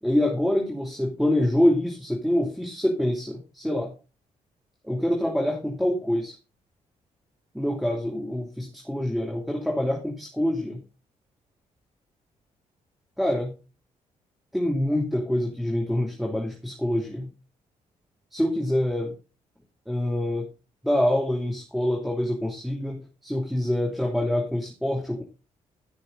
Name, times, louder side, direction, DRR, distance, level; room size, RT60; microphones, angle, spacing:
voice 1, 0.0-3.9 4.8-6.4 7.5-10.8 13.2-13.5 14.5-17.3 18.3-19.2 19.9-20.5 20.8-25.2, left 1 dB, ahead, -1 dB, 2.9 m, -25 dB
14.0 x 6.4 x 3.9 m, 0.32 s
hypercardioid pair, 40°, 17 cm